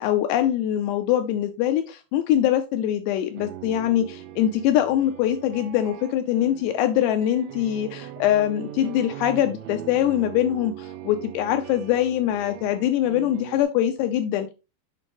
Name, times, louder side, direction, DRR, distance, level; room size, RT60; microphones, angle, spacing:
voice 1, 0.0-14.5, left 11 dB, 85° left, 7 dB, 2.4 m, -23 dB
sound 1, 3.2-13.6, right 11 dB, 80° right, 3.0 m, -40 dB
7.7 x 4.9 x 3.5 m, 0.29 s
omnidirectional pair, 5.3 m